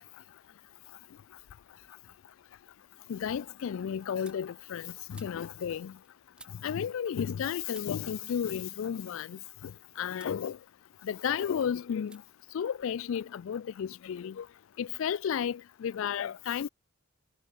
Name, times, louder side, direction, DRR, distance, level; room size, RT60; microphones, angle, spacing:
sound 1, 2.6-7.4 7.7-9.7 10.1-10.4 10.8-11.5 12.0-12.2 12.5-13.5, right 2 dB, 5° right, 2.3 m, -59 dB
voice 1, 3.1-5.9 6.6-9.7 10.0-10.6 11.0-12.2 12.5-14.5 14.8-16.7, left 8 dB, 60° left, 0.3 m, -33 dB
head